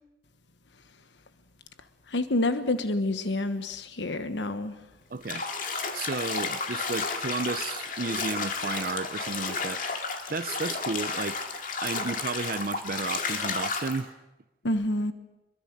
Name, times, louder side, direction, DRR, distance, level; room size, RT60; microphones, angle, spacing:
voice 1, 2.1-4.7 14.6-15.1, left 2 dB, 85° left, 1.2 m, -28 dB
voice 2, 5.1-5.4 5.9-9.8 10.3-11.4 11.8-14.1, right 3 dB, 55° right, 0.7 m, -32 dB
Bathtub (filling or washing), 5.2-14.0, left 4 dB, 50° left, 2.2 m, -32 dB
24.0 x 22.5 x 6.7 m
head